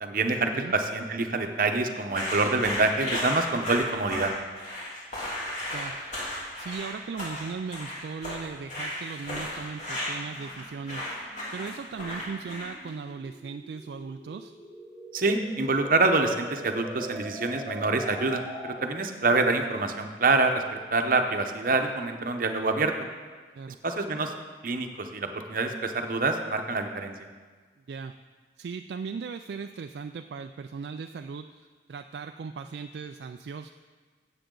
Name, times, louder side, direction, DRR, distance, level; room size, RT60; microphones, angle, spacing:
voice 1, 0.0-4.3 15.1-22.9 23.8-24.3 24.6-27.3, right 3 dB, 50° right, 5 dB, 0.9 m, -26 dB
sound 1, 2.1-12.9, left 1 dB, 45° left, 3.2 m, -34 dB
voice 2, 6.6-11.0 11.5-14.5 23.6-23.8 27.9-28.2 28.6-31.5 31.9-33.7, right 5 dB, 70° right, 7 dB, 0.3 m, -37 dB
sound 2, 8.8-19.2, right 1 dB, 10° left, 1.2 m, -44 dB
13.5 x 8.2 x 3.8 m, 1.4 s
head